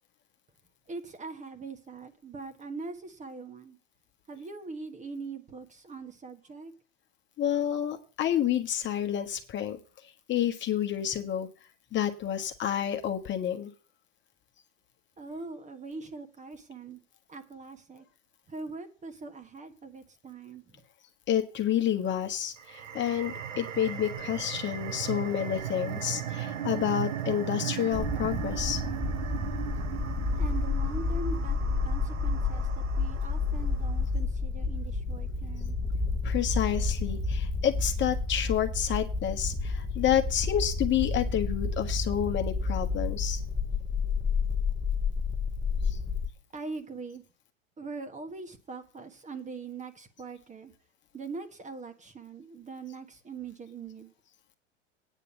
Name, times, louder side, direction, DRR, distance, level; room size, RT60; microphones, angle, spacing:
voice 1, 0.9-3.8 4.3-6.7 15.2-17.0 17.3-18.0 18.5-20.8 30.4-35.8 46.5-47.2 47.8-50.7 51.1-54.1, right 4 dB, 20° right, 7 dB, 1.4 m, -42 dB
voice 2, 7.4-9.8 10.3-11.5 11.9-13.7 21.3-28.8 36.2-43.4 45.9-46.0, left 10 dB, 30° left, 6 dB, 1.3 m, -29 dB
sound 1, 22.6-33.7, right 9 dB, 85° right, 1.2 m, -37 dB
sound 2, 27.9-46.3, left 3 dB, 10° left, 1.2 m, -30 dB
9.4 x 6.6 x 7.0 m, 0.35 s
hypercardioid pair, 105°, 36 cm